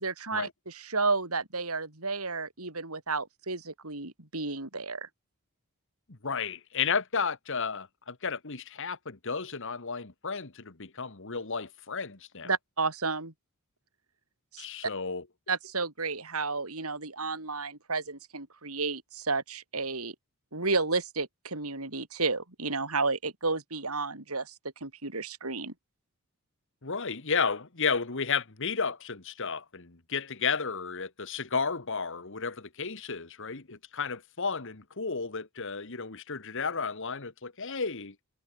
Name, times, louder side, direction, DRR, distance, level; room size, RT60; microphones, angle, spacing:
voice 1, 0.0-5.1 12.4-13.3 14.5-14.6 15.5-20.2 20.5-24.5 24.8-25.7, right 3 dB, 80° right, 5.3 m, -32 dB
voice 2, 6.1-12.5 14.6-15.2 26.8-38.2, left 5 dB, 60° left, 1.7 m, -33 dB
head